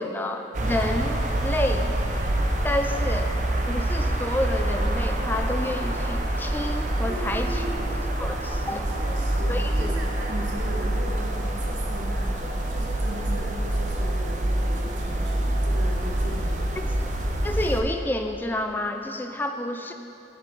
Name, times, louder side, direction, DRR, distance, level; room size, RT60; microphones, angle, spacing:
voice 1, 0.0-2.0 2.6-3.3 3.7-7.6 8.2-8.9 9.5-9.9 17.0-17.1 17.4-19.9, left 1 dB, 10° left, 5 dB, 0.3 m, -29 dB
sound 1, 0.5-17.8, right 1 dB, 45° right, 0.6 m, -26 dB
voice 2, 7.1-8.2 9.0-16.6, right 1 dB, 90° right, -2 dB, 1.3 m, -37 dB
8.2 x 6.7 x 3.8 m, 2.9 s
head